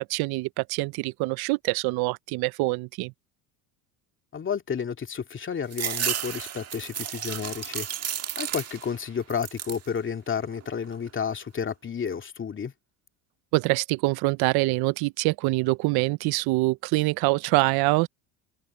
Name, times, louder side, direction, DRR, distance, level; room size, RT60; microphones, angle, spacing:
voice 1, 0.0-3.1 13.5-18.1, right 23 dB, 65° right, 0.8 m, -25 dB
voice 2, 4.3-12.7, left 7 dB, 30° left, 2.6 m, -31 dB
sound 1, 5.7-9.0 9.3-9.9 10.4-11.1, right 9 dB, 40° right, 1.7 m, -32 dB
supercardioid pair, 95°, 40 cm